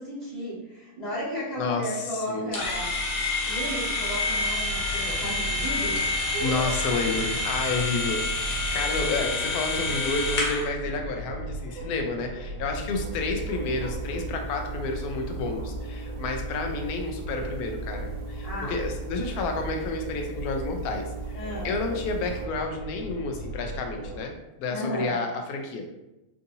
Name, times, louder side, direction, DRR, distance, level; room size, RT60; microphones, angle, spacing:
voice 1, 0.0-2.9 3.5-6.0 6.3-6.9 18.4-18.8 21.3-21.8 24.7-25.1, equal, 30° left, -10 dB, 1.4 m, -34 dB
voice 2, 1.6-2.5 6.4-24.3 24.6-26.0, left 3 dB, 75° left, 3 dB, 1.0 m, -30 dB
sound 1, 2.5-10.7, left 2 dB, 90° left, 1.3 m, -28 dB
sound 2, 4.7-24.2, right 1 dB, 90° right, 1.4 m, -38 dB
sound 3, 12.7-22.5, right 3 dB, 70° right, 0.9 m, -38 dB
3.7 x 2.6 x 2.6 m, 0.96 s
omnidirectional pair, 1.7 m